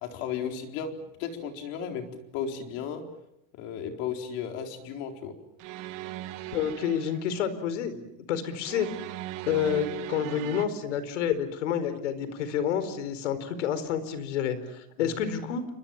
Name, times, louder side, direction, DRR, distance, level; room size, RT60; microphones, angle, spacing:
voice 1, 0.0-3.0 3.5-5.3 15.0-15.1, left 7 dB, 40° left, 4 dB, 4.1 m, -35 dB
sound 1, 5.6-7.3 8.6-10.7, right 15 dB, 40° right, 2.0 m, -39 dB
voice 2, 6.5-8.9 9.5-15.7, left 8 dB, 85° left, 13 dB, 4.6 m, -29 dB
30.0 x 24.5 x 7.3 m, 0.83 s
supercardioid pair, 175°, 35 cm